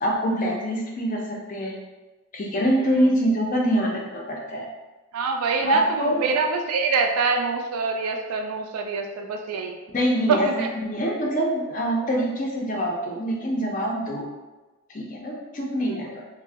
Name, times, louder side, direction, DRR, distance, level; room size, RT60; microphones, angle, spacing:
voice 1, 0.0-1.8 2.3-4.7 5.6-6.2 9.9-14.3 14.9-16.2, equal, 35° left, -1 dB, 0.4 m, -25 dB
voice 2, 5.1-9.8 10.3-10.7 15.8-16.0, right 4 dB, 90° right, 3 dB, 0.4 m, -25 dB
2.6 x 2.0 x 3.3 m, 1.2 s
head